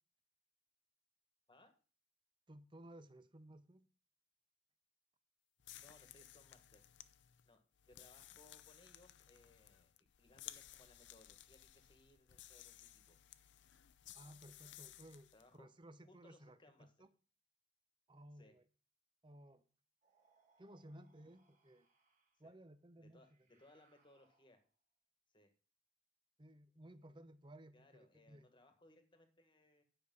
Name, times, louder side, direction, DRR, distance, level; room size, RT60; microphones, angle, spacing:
voice 1, 2.5-3.9 14.1-17.1 18.1-18.6 19.2-19.6 20.6-21.9 22.4-23.3 26.4-28.5, right 1 dB, 25° right, 0.7 m, -58 dB
sound 1, 5.6-15.5, left 13 dB, 70° left, 0.6 m, -58 dB
voice 2, 5.8-6.8 7.4-7.6 7.9-9.9 10.2-13.2 15.3-15.7 16.0-16.9 18.3-18.6 22.4-22.5 23.0-24.6 25.3-25.5 27.7-29.8, left 1 dB, 25° left, 1.5 m, -67 dB
sound 2, 20.0-22.5 23.1-24.8, right 4 dB, 40° right, 2.3 m, -77 dB
10.0 x 6.4 x 5.4 m
head